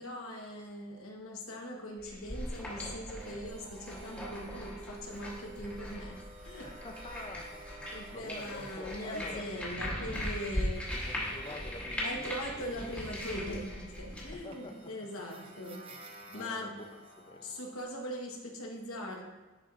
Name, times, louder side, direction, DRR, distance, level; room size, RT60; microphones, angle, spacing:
voice 1, 0.0-6.7 7.9-11.0 12.0-15.9 16.3-16.8 17.4-19.3, left 1 dB, 75° left, 1 dB, 1.1 m, -41 dB
sound 1, 2.0-14.3, equal, 5° left, 1.2 m, -39 dB
sound 2, 3.1-17.8, right 3 dB, 25° right, 0.5 m, -52 dB
voice 2, 6.6-9.5 11.1-12.7 14.3-15.5 15.9-16.0 16.3-17.6, left 2 dB, 25° left, 4 dB, 0.5 m, -48 dB
11.0 x 4.5 x 2.5 m, 1.2 s
head